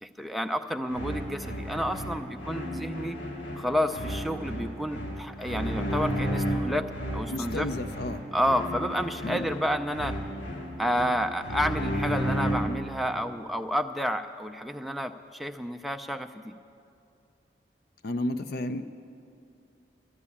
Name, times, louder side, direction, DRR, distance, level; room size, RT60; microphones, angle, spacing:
voice 1, 0.0-3.2 3.6-6.9 7.1-7.7 8.3-10.1 10.8-16.6, equal, ahead, 6 dB, 0.4 m, -30 dB
sound 1, 0.9-12.9, equal, 85° left, 2.1 m, -33 dB
voice 2, 7.3-8.2 9.2-9.5 18.0-18.8, left 1 dB, 55° left, 9 dB, 0.5 m, -32 dB
12.0 x 11.0 x 8.5 m, 2.5 s
head